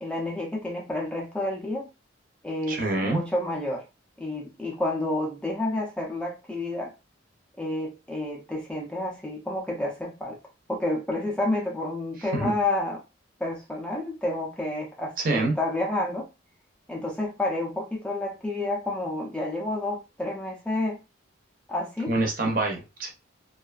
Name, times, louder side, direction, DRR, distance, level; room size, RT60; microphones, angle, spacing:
voice 1, 0.0-1.9 2.4-3.8 4.2-6.9 7.6-10.4 10.7-13.0 13.4-16.3 16.9-21.0 21.7-22.1, left 2 dB, 5° left, 0.4 m, -30 dB
voice 2, 2.7-3.2 12.3-12.5 15.2-15.5 22.1-23.1, right 2 dB, 45° right, 0.6 m, -26 dB
2.5 x 2.3 x 2.4 m
head